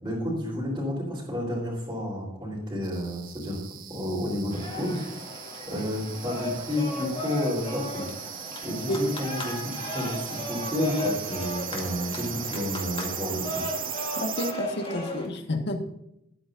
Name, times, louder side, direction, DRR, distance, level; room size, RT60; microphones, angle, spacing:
voice 1, 0.0-3.6 3.9-5.0 5.6-8.1 8.6-13.7, left 1 dB, 20° right, -8 dB, 4.0 m, -31 dB
sound 1, 2.8-14.5, right 10 dB, 45° right, 0.8 m, -38 dB
sound 2, 4.5-15.3, left 1 dB, 30° left, 2.1 m, -36 dB
voice 2, 14.2-15.8, left 1 dB, 60° left, 4 dB, 1.6 m, -30 dB
21.0 x 9.0 x 2.6 m, 0.83 s
head